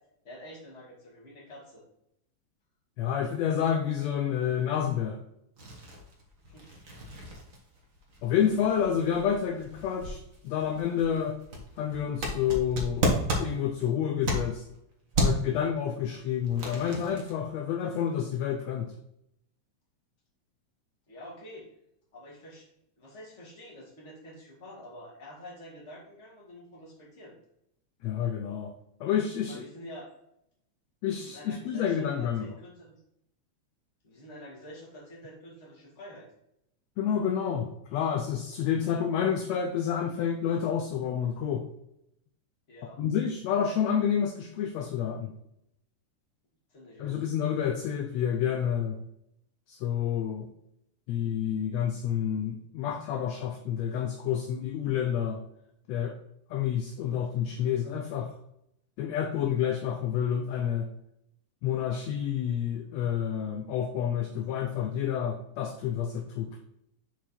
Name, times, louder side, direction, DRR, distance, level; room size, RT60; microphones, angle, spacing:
voice 1, 0.2-1.8 6.5-6.8 21.1-21.7 22.1-22.7 23.0-27.4 29.5-30.1 31.2-33.0 34.0-36.3 42.7-43.0 46.7-47.2, equal, 25° left, -3 dB, 2.2 m, -47 dB
voice 2, 3.0-5.2 8.2-10.2 10.4-11.4 11.8-13.1 13.4-14.6 15.2-18.9 28.0-28.7 29.0-29.6 31.0-32.5 37.0-41.7 43.0-45.3 47.0-49.0 49.7-50.5 51.1-55.4 55.9-56.2 56.5-58.3 59.0-60.9 61.6-66.6, left 8 dB, 75° left, 4 dB, 1.7 m, -29 dB
sound 1, 5.6-14.8 15.1-15.6 16.1-17.3, right 1 dB, 35° right, 1.4 m, -33 dB
7.0 x 4.5 x 4.3 m, 0.80 s
omnidirectional pair, 3.4 m